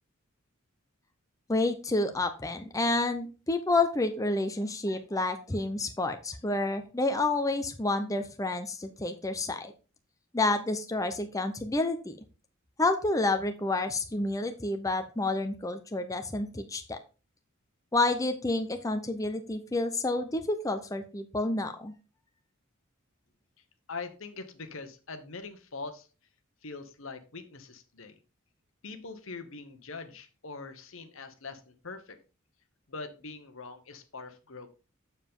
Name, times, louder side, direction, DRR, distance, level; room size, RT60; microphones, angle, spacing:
voice 1, 1.5-9.7 10.3-12.2 12.8-17.0 17.9-21.9, left 2 dB, 15° left, 7 dB, 0.7 m, -29 dB
voice 2, 23.9-26.1 26.6-28.2 28.8-32.2 32.9-34.7, left 4 dB, 70° left, 9 dB, 1.2 m, -42 dB
7.2 x 7.0 x 3.7 m, 0.33 s
head